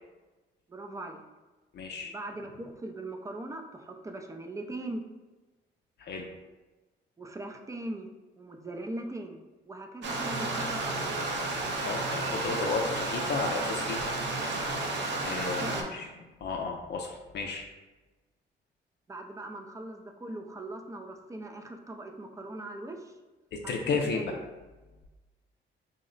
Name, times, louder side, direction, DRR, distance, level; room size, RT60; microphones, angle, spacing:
voice 1, 0.7-1.2 2.0-5.0 7.2-8.1 8.4-9.4 9.7-11.1 15.6-15.9 19.1-23.1 23.6-24.3, right 2 dB, 15° right, 4 dB, 0.4 m, -40 dB
voice 2, 1.7-2.1 6.0-6.3 11.8-14.0 15.2-16.1 16.4-17.6 23.5-24.4, left 4 dB, 60° left, 1 dB, 0.4 m, -33 dB
Stream, 10.0-15.8, right 2 dB, 65° right, 0.6 m, -32 dB
3.9 x 2.1 x 3.8 m, 1.2 s
cardioid pair, 90°, 20 cm